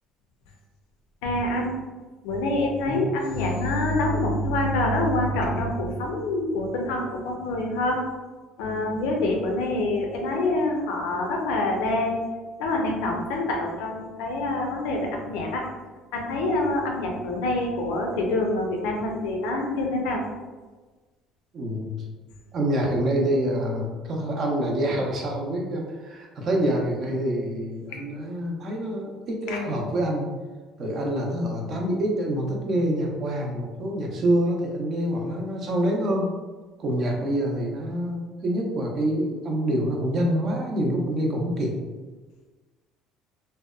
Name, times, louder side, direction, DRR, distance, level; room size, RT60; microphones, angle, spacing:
voice 1, 1.2-1.7 2.2-8.0 8.6-12.2 12.6-15.7 16.1-20.2 29.5-29.6, left 2 dB, 90° left, 1 dB, 0.5 m, -26 dB
voice 2, 21.5-21.9 22.5-30.3 30.8-36.3 36.8-41.8, right 1 dB, 45° right, 0 dB, 0.5 m, -26 dB
2.7 x 2.1 x 2.3 m, 1.3 s
cardioid pair, 115°, 0 cm